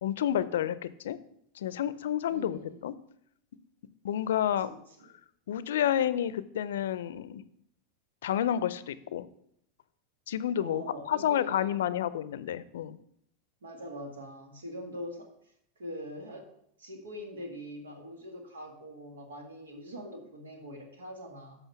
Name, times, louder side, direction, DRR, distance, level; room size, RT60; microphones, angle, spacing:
voice 1, 0.0-1.2 1.6-2.9 4.0-4.7 5.5-7.4 8.2-9.3 10.3-13.0, left 10 dB, 75° left, 16 dB, 0.5 m, -30 dB
voice 2, 2.3-2.8 4.6-4.7 5.0-5.1 10.6-12.0 13.6-15.3 15.8-16.5 16.8-21.6, equal, 85° right, 3 dB, 1.8 m, -43 dB
8.2 x 5.5 x 5.7 m, 0.71 s
hypercardioid pair, 95°, 0 cm